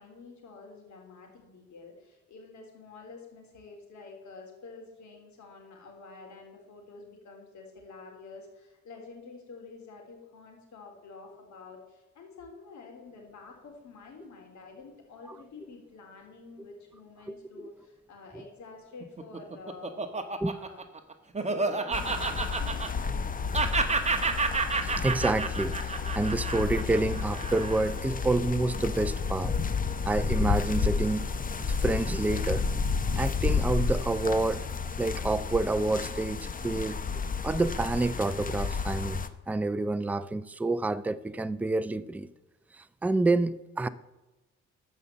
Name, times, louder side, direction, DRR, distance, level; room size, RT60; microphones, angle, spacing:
voice 1, 0.0-20.0 20.5-20.8 21.4-24.1, left 4 dB, 70° left, 3.6 m, -48 dB
Laughter, 19.0-23.3 23.5-28.0, right 4 dB, 20° right, 1.3 m, -30 dB
sound 1, 21.9-39.3, left 5 dB, 30° left, 0.8 m, -31 dB
voice 2, 24.8-29.6 30.1-31.3 31.7-32.7 33.2-34.7 34.9-37.0 37.4-42.3 42.7-43.9, right 2 dB, 5° right, 0.4 m, -28 dB
13.5 x 5.5 x 7.5 m
cardioid pair, 90°, 30 cm